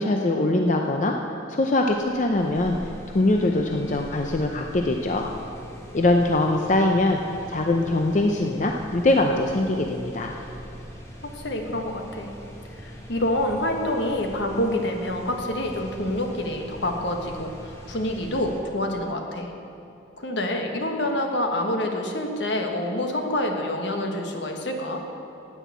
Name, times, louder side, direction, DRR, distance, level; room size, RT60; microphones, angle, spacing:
voice 1, 0.0-2.8 3.1-5.3 5.9-7.2 7.5-10.3, left 2 dB, 40° left, 2 dB, 0.6 m, -22 dB
sound 1, 1.8-18.6, equal, 15° left, 1.6 m, -42 dB
voice 2, 11.2-12.3 12.8-19.5 20.2-25.0, left 1 dB, 70° left, 3 dB, 1.4 m, -27 dB
9.8 x 9.3 x 8.2 m, 2.8 s
head